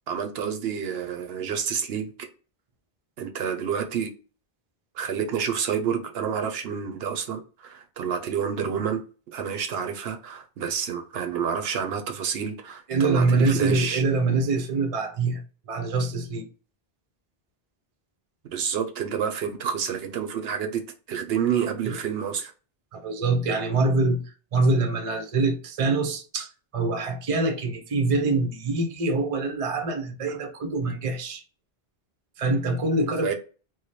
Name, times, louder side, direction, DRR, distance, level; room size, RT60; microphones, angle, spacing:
voice 1, 0.1-2.1 3.2-4.1 5.0-14.0 18.5-20.8 21.1-22.5 30.3-30.4 33.2-33.3, right 7 dB, 80° right, 0.8 m, -29 dB
voice 2, 12.9-15.4 15.7-16.5 21.9-22.0 22.9-24.2 24.5-31.4 32.4-33.3, right 3 dB, 40° right, 0.6 m, -24 dB
3.1 x 2.1 x 4.0 m
omnidirectional pair, 1.0 m